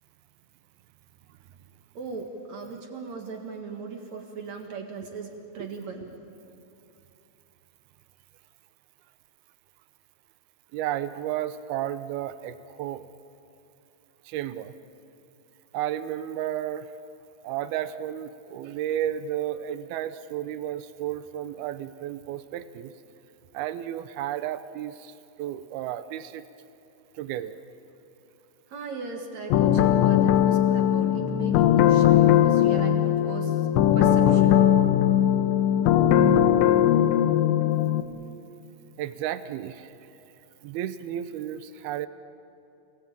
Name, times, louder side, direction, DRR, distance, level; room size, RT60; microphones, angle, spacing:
voice 1, 1.9-6.1 28.7-33.7 33.9-34.7 35.5-35.6 35.9-36.0, right 4 dB, 55° right, 3 dB, 2.2 m, -38 dB
voice 2, 10.7-13.1 14.3-14.7 15.7-16.9 17.4-22.9 23.5-25.1 25.4-26.4 27.2-27.6 39.0-39.9 40.6-42.1, right 11 dB, 80° right, 12 dB, 2.3 m, -32 dB
sound 1, 29.5-38.0, left 10 dB, 75° left, 3.1 m, -20 dB
29.5 x 18.5 x 8.7 m, 2.8 s
omnidirectional pair, 5.3 m